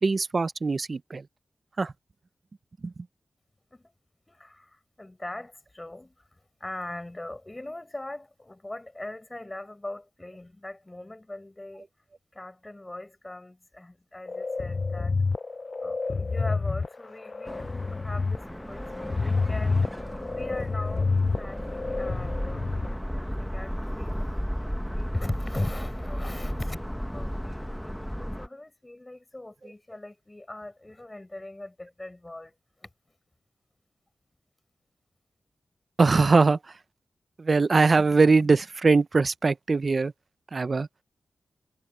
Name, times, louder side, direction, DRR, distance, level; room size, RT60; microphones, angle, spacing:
voice 1, 0.0-1.2 1.8-1.9 2.8-2.9 36.0-36.6 37.4-40.1 40.5-40.9, right 4 dB, 55° right, 0.6 m, -21 dB
voice 2, 4.3-6.1 6.6-11.9 12.3-15.2 15.8-18.9 19.1-24.4 24.9-26.8 27.1-27.9 28.2-32.5 32.8-32.9, left 1 dB, 25° left, 7.6 m, -40 dB
sound 1, 14.3-22.9, left 4 dB, 50° left, 0.6 m, -28 dB
sound 2, 17.5-28.5, equal, ahead, 1.3 m, -34 dB
cardioid pair, 45°, 0 cm